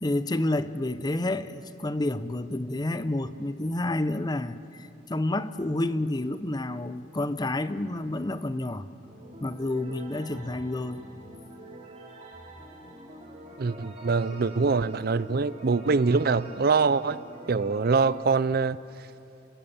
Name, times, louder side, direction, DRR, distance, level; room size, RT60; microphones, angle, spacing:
voice 1, 0.0-8.9 9.4-11.1, left 2 dB, 20° left, 0.7 m, -29 dB
sound 1, 9.0-18.1, right 1 dB, 35° right, 4.0 m, -46 dB
voice 2, 13.6-17.2 17.5-18.8, right 4 dB, 55° right, 0.5 m, -24 dB
30.0 x 16.0 x 7.2 m
head